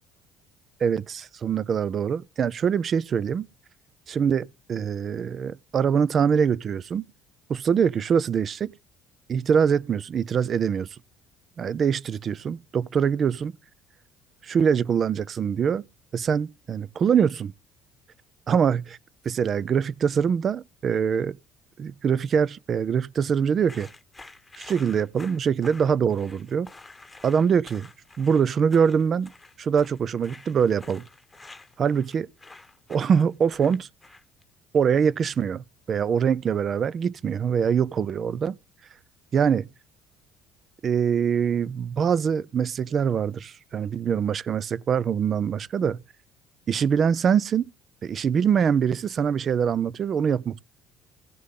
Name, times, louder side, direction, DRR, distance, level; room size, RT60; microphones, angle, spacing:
voice 1, 0.8-3.5 4.1-7.1 7.5-8.7 9.3-10.9 11.6-13.5 14.4-15.8 16.1-17.5 18.5-19.0 19.2-21.4 21.8-23.9 24.6-26.7 27.2-27.9 28.2-29.3 29.6-31.1 31.8-32.3 32.9-33.9 34.7-38.6 39.3-39.7 40.8-46.0 46.7-47.7 48.0-50.6, right 7 dB, 45° right, 0.4 m, -24 dB
sound 1, 23.6-34.4, left 3 dB, 15° left, 1.2 m, -48 dB
16.0 x 6.4 x 3.7 m
hypercardioid pair, 70°, 0 cm